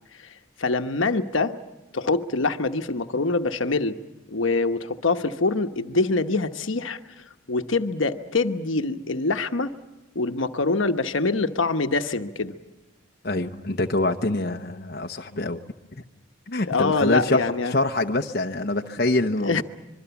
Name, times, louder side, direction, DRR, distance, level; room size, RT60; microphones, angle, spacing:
voice 1, 0.6-1.6 1.9-4.0 4.3-7.0 7.5-9.7 10.1-12.5 16.7-17.8 19.4-19.6, left 3 dB, 80° left, 7 dB, 1.1 m, -24 dB
voice 2, 13.2-15.6 16.5-19.6, left 2 dB, 50° left, 4 dB, 0.9 m, -25 dB
25.5 x 23.5 x 7.1 m, 1.0 s
head